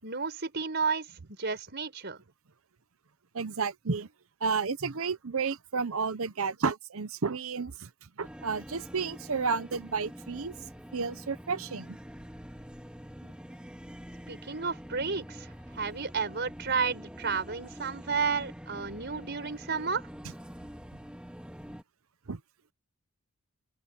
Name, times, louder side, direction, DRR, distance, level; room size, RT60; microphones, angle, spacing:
voice 1, 0.0-1.1 1.4-2.2 14.3-15.5 15.8-20.0, right 5 dB, 50° right, 5.5 m, -32 dB
voice 2, 3.3-4.1 4.4-7.9 8.2-10.5 10.9-12.0 22.3-22.4, right 5 dB, 65° right, 0.8 m, -31 dB
sound 1, 8.2-21.8, equal, 5° right, 2.3 m, -46 dB
open air
head